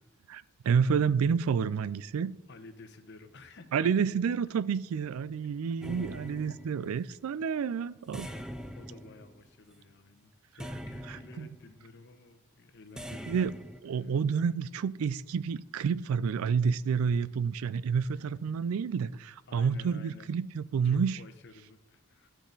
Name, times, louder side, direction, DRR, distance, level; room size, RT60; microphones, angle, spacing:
voice 1, 0.3-2.3 3.7-8.3 11.1-11.5 13.3-13.5 13.8-21.2, right 6 dB, 80° right, 0.3 m, -29 dB
voice 2, 2.5-3.9 8.2-8.4 8.7-13.6 13.9-14.1 19.5-20.3 20.8-22.3, left 3 dB, 55° left, 0.9 m, -52 dB
sound 1, 5.8-7.1 8.1-9.8 10.6-11.7 13.0-13.8, equal, 5° right, 0.4 m, -43 dB
12.0 x 6.2 x 3.9 m
head